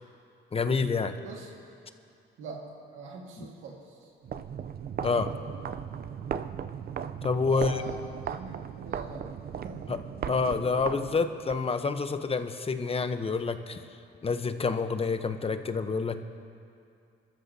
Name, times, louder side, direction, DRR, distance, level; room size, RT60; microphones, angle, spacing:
voice 1, 0.5-1.2 3.4-3.5 5.0-5.3 7.2-7.8 9.9-10.0 10.3-13.8 14.2-16.2, left 4 dB, 30° left, 9 dB, 0.8 m, -28 dB
voice 2, 2.9-4.1 7.5-9.3 9.6-9.9, right 4 dB, 90° right, -2 dB, 1.9 m, -43 dB
sound 1, 4.2-11.6, right 8 dB, 50° right, 0.5 m, -37 dB
28.0 x 13.5 x 2.8 m, 2.5 s
cardioid pair, 90°, 20 cm